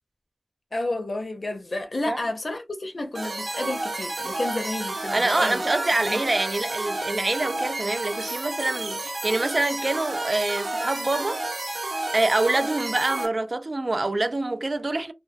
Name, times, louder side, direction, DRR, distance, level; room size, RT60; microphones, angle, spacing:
voice 1, 0.7-5.6 6.1-6.2, left 2 dB, 70° left, 0.6 m, -31 dB
sound 1, 3.1-13.3, right 2 dB, 75° right, 0.7 m, -31 dB
voice 2, 5.1-11.4 12.1-15.1, right 2 dB, 55° right, 0.4 m, -25 dB
2.2 x 2.2 x 2.6 m
wide cardioid pair, 55°, 0 cm